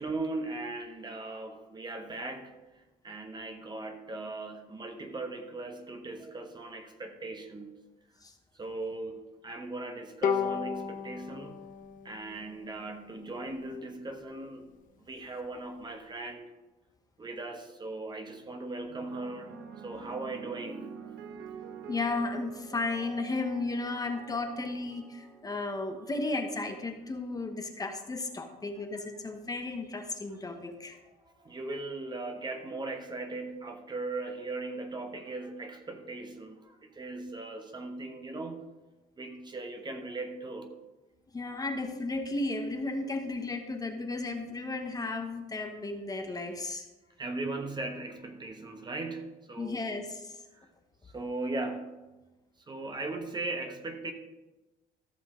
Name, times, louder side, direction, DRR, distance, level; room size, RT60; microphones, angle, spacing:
voice 1, 0.0-2.6 3.0-7.8 8.5-11.7 12.0-14.7 15.1-16.5 17.2-20.9 31.4-38.7 39.2-40.8 47.2-50.0 50.6-50.7 51.1-52.0 52.7-54.1, right 2 dB, 25° right, 5 dB, 1.1 m, -38 dB
Bowed string instrument, 10.2-13.6, left 7 dB, 50° left, 0.9 m, -34 dB
sound 1, 18.9-27.5 28.4-28.8, right 6 dB, 70° right, 1.0 m, -47 dB
voice 2, 21.9-31.0 41.3-46.9 49.6-50.4, left 3 dB, 20° left, 5 dB, 1.1 m, -34 dB
14.0 x 6.2 x 3.8 m, 1.1 s
cardioid pair, 110°, 17 cm